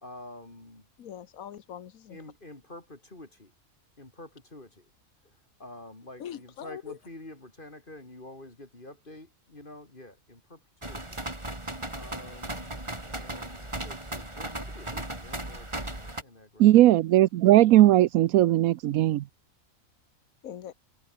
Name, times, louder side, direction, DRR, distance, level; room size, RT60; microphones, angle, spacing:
voice 1, 0.0-0.9 2.1-3.5 4.0-4.9 5.2-5.3 5.6-11.2 12.0-16.7 17.7-18.0, left 1 dB, 35° left, 3.7 m, -47 dB
voice 2, 1.0-2.2 6.2-7.0 20.4-20.7, left 9 dB, 75° left, 1.4 m, -41 dB
sound 1, 10.8-16.2, right 1 dB, 20° right, 3.2 m, -37 dB
voice 3, 16.6-19.2, right 14 dB, 85° right, 1.1 m, -18 dB
omnidirectional pair, 1.5 m